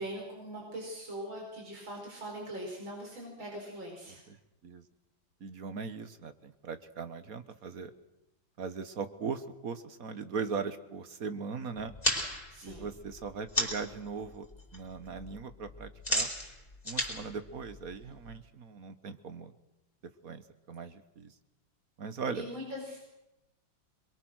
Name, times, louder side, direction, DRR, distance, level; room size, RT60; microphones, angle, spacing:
voice 1, 0.0-4.2 12.5-12.9 22.3-23.0, right 1 dB, 85° right, -1 dB, 6.1 m, -41 dB
voice 2, 5.4-7.9 8.6-11.9 12.6-14.5 14.7-16.3 16.9-19.5 20.2-20.4 20.7-21.3 22.0-22.4, right 5 dB, 50° right, 11 dB, 1.7 m, -39 dB
sound 1, 11.8-14.0 14.3-14.8 15.0-18.3, left 1 dB, 20° left, 4.7 m, -34 dB
27.0 x 22.5 x 6.4 m, 0.92 s
omnidirectional pair, 2.1 m